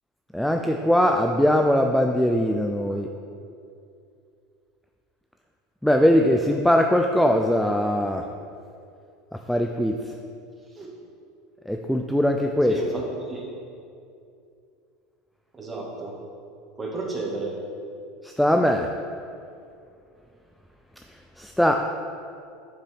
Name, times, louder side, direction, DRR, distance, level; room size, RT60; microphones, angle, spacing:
voice 1, 0.3-3.1 5.8-8.2 9.5-10.1 11.7-12.8 18.2-18.9 21.4-21.9, equal, 5° left, 3 dB, 0.4 m, -21 dB
voice 2, 12.7-13.4 15.5-16.1 16.8-17.5, right 3 dB, 20° right, -3 dB, 1.9 m, -32 dB
7.3 x 6.7 x 3.6 m, 2.5 s
hypercardioid pair, 90°, 0 cm